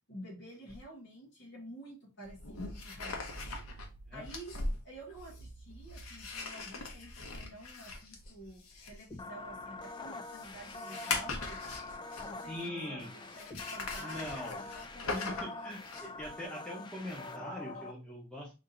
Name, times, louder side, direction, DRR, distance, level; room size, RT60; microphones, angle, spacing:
voice 1, 0.1-3.4 4.1-11.6 12.2-15.5, right 1 dB, 55° left, -5 dB, 1.3 m, -50 dB
sound 1, 0.7-0.8 2.2-12.6 13.3-16.3, left 3 dB, 85° left, 0.9 m, -41 dB
sound 2, 9.1-17.9, left 3 dB, 20° left, 0.4 m, -45 dB
voice 2, 12.5-13.1 14.0-14.6 15.1-18.5, left 1 dB, 5° left, -5 dB, 1.0 m, -42 dB
3.6 x 2.7 x 3.8 m, 0.29 s
head